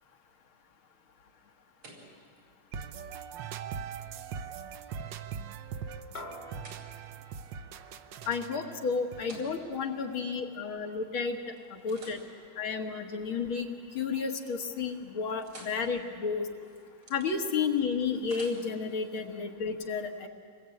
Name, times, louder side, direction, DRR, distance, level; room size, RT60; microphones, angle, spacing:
sound 1, 1.1-11.1 11.6-13.8 14.2-14.6 14.9-19.2, right 2 dB, 90° right, 5.0 m, -56 dB
sound 2, 2.7-10.6, right 7 dB, 65° right, 1.4 m, -42 dB
sound 3, 6.1-10.8, left 1 dB, 35° left, 1.3 m, -50 dB
voice 1, 8.3-11.4 11.7-12.2 12.6-13.7 13.9-16.5 17.1-20.3, left 5 dB, 75° left, 3 dB, 2.4 m, -32 dB
26.0 x 20.0 x 8.6 m, 2.2 s
omnidirectional pair, 2.3 m